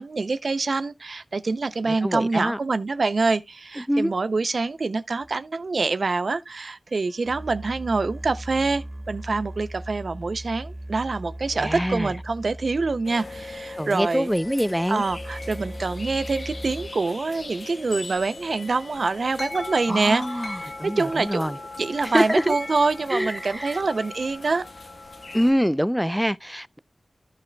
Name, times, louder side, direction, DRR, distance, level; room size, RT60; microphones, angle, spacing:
voice 1, 0.0-14.3 14.9-24.7, right 3 dB, 70° right, 0.5 m, -26 dB
voice 2, 1.8-2.6 3.8-4.1 11.5-12.1 13.8-15.0 19.9-21.6 22.0-22.6 23.1-23.8 25.3-26.8, equal, ahead, 0.4 m, -25 dB
sound 1, 5.2-5.3 6.9-16.9, right 1 dB, 45° right, 2.3 m, -39 dB
sound 2, 13.0-25.5, left 2 dB, 60° left, 1.2 m, -38 dB
14.0 x 5.7 x 2.2 m
wide cardioid pair, 85°, 0 cm